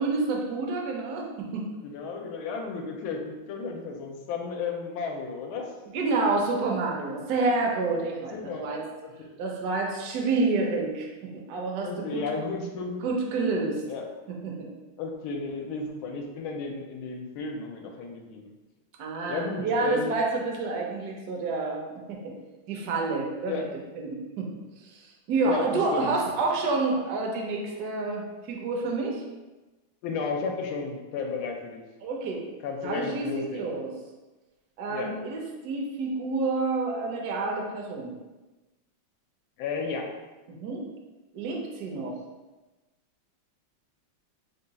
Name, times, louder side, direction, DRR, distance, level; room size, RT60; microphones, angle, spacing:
voice 1, 0.0-1.6 5.9-8.8 9.4-12.2 13.0-13.8 14.3-14.6 19.0-21.8 22.1-22.3 22.7-23.7 24.0-24.5 24.8-29.2 32.0-32.4 32.8-33.9 34.8-38.1 40.5-40.8 41.3-42.1, right 3 dB, 65° right, -1 dB, 1.0 m, -29 dB
voice 2, 1.8-5.7 7.4-7.5 8.3-8.7 9.0-9.1 11.8-13.0 13.9-14.0 15.0-18.5 19.3-20.1 23.5-23.7 25.4-26.3 30.0-31.8 32.6-33.7 34.9-35.1 39.6-40.1, left 4 dB, 85° left, 2 dB, 1.4 m, -33 dB
3.6 x 2.2 x 3.9 m, 1.1 s
omnidirectional pair, 2.2 m